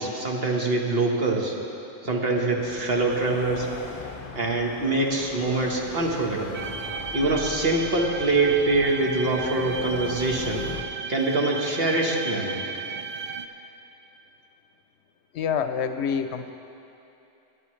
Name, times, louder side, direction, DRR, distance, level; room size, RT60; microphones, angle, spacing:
voice 1, 0.0-1.6 2.0-3.7 4.3-6.6 7.1-10.6 11.1-12.6, right 2 dB, 55° right, -1 dB, 1.5 m, -24 dB
sound 1, 2.6-10.8, left 4 dB, 40° left, 0.6 m, -40 dB
sound 2, 6.5-13.5, right 5 dB, 70° right, 0.3 m, -35 dB
voice 2, 15.3-16.5, left 7 dB, 70° left, 9 dB, 0.8 m, -27 dB
20.0 x 10.5 x 3.2 m, 2.8 s
omnidirectional pair, 1.2 m